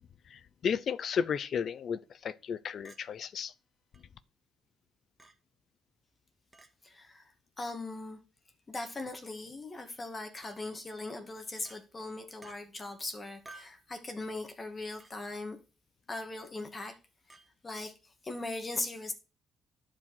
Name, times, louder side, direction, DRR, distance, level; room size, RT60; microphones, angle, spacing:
voice 1, 0.3-3.5, left 7 dB, 60° left, 0.7 m, -33 dB
Chink clink, 2.8-3.0 3.9-4.0 5.2-5.3 6.5-6.7 7.6-7.8 9.0-9.2 10.4-10.6 11.6-11.8 12.4-12.6 13.4-13.8 15.0-15.1 16.1-16.3 17.3-17.5, right 2 dB, 15° right, 1.9 m, -53 dB
voice 2, 6.8-7.3 7.6-8.2 8.7-15.6 16.1-17.0 17.6-19.1, left 2 dB, 30° left, 2.3 m, -39 dB
11.0 x 5.1 x 6.1 m
cardioid pair, 90°, 0 cm